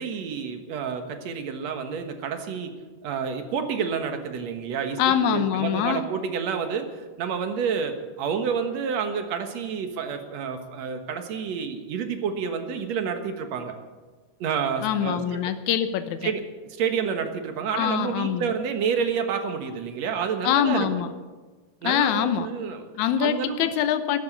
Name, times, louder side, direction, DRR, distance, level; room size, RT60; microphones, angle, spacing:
voice 1, 0.0-2.7 3.0-13.7 14.4-15.4 16.2-16.4 16.7-21.0 21.8-22.8 23.2-23.6, right 6 dB, 65° right, 6 dB, 2.5 m, -29 dB
voice 2, 5.0-6.0 14.8-16.3 17.7-18.5 20.4-21.1 21.8-22.5 23.0-24.2, left 9 dB, 80° left, 10 dB, 2.2 m, -24 dB
13.5 x 12.0 x 8.1 m, 1.3 s
omnidirectional pair, 3.4 m